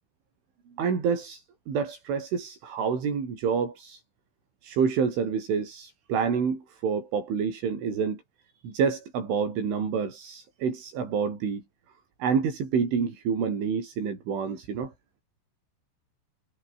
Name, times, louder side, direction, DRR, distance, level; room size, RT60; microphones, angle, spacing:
voice 1, 0.8-4.0 4.6-8.2 8.6-11.6 12.2-14.9, right 6 dB, 70° right, 8.2 m, -28 dB
omnidirectional pair, 5.7 m